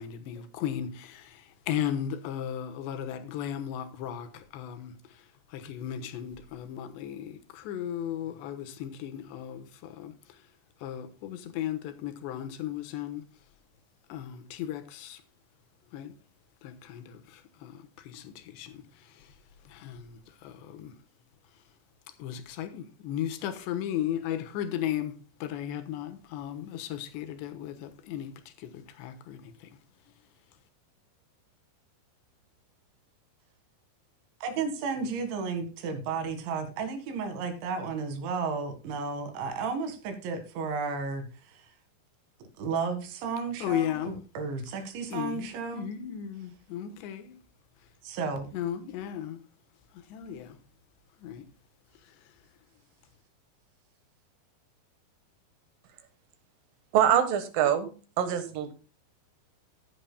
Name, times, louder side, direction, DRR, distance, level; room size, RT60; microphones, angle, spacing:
voice 1, 0.0-5.2 5.5-10.4 10.8-13.2 14.1-15.2 15.9-16.1 16.6-19.3 19.7-20.9 22.2-29.7 43.6-44.2 45.1-47.4 48.5-49.4 49.9-50.6 51.2-51.5, left 10 dB, 75° left, 3.3 m, -36 dB
voice 2, 34.4-41.7 42.6-45.8 48.0-48.5, right 5 dB, 85° right, 4.1 m, -33 dB
voice 3, 56.9-57.9 58.2-58.7, right 9 dB, 65° right, 2.6 m, -24 dB
14.5 x 10.0 x 2.2 m
omnidirectional pair, 5.2 m